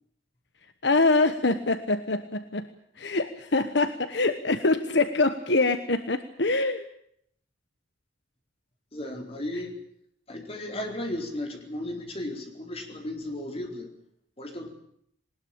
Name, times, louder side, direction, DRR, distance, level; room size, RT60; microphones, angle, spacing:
voice 1, 0.8-2.7 3.0-6.9, left 3 dB, 65° left, 10 dB, 1.2 m, -24 dB
voice 2, 8.9-9.7 10.3-13.9 14.4-14.7, left 1 dB, 30° left, 3 dB, 4.4 m, -35 dB
20.5 x 20.0 x 8.7 m, 0.69 s
head